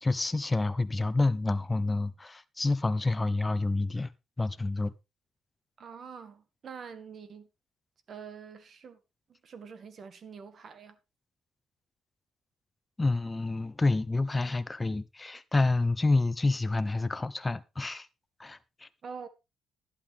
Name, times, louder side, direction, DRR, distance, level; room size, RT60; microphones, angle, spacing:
voice 1, 0.0-4.1 4.4-4.9 13.0-18.1 18.4-18.9, left 2 dB, 20° left, 1.0 m, -28 dB
voice 2, 5.8-7.5 8.1-9.0 9.4-11.0 19.0-19.3, right 6 dB, 55° right, 1.8 m, -45 dB
11.5 x 11.5 x 3.6 m
cardioid pair, 90°, 0 cm